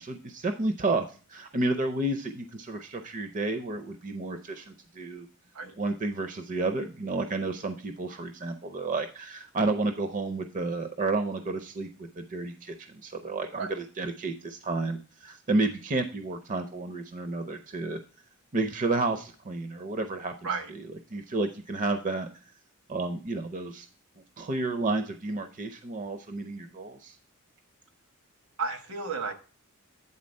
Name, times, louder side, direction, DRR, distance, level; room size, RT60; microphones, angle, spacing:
voice 1, 0.0-5.3 5.8-11.9 12.2-18.0 18.5-20.3 21.1-22.3 22.9-23.9 24.4-27.1, right 2 dB, 35° right, 7 dB, 0.6 m, -31 dB
voice 2, 28.6-29.3, right 4 dB, 80° right, 5 dB, 1.3 m, -32 dB
8.7 x 3.9 x 5.2 m, 0.36 s
head